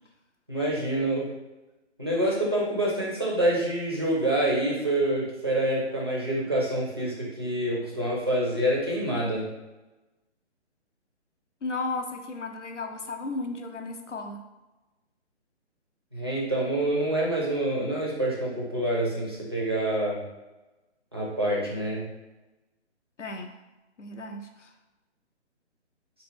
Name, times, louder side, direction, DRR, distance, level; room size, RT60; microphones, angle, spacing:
voice 1, 0.5-1.3 2.0-9.5 16.1-20.2 21.1-22.0, right 1 dB, 25° right, -4 dB, 0.4 m, -27 dB
voice 2, 11.6-14.5 23.2-23.6 24.0-24.7, left 3 dB, 90° left, 5 dB, 0.6 m, -34 dB
3.5 x 2.1 x 3.3 m, 1.1 s
figure-of-eight pair, 140°, 35 cm